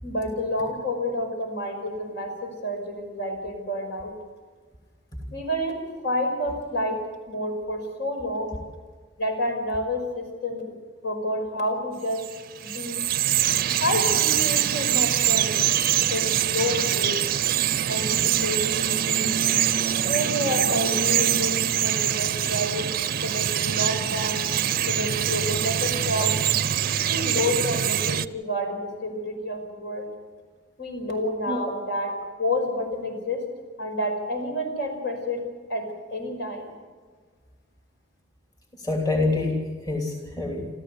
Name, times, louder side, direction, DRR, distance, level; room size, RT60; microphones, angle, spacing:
voice 1, 0.0-4.1 5.3-7.0 7.3-8.5 9.2-10.7 11.0-12.2 12.6-13.1 13.8-15.6 16.1-17.2 17.9-19.3 20.0-24.4 24.9-26.4 27.1-30.1 30.8-32.1 32.4-33.4 33.8-35.4 35.7-36.7, left 1 dB, 65° left, 3 dB, 5.5 m, -29 dB
Bird vocalization bird call bird song, 12.1-28.3, right 10 dB, 50° right, 0.5 m, -24 dB
voice 2, 38.8-40.7, left 2 dB, 20° left, 1 dB, 2.8 m, -26 dB
26.5 x 14.5 x 8.2 m, 1.5 s
head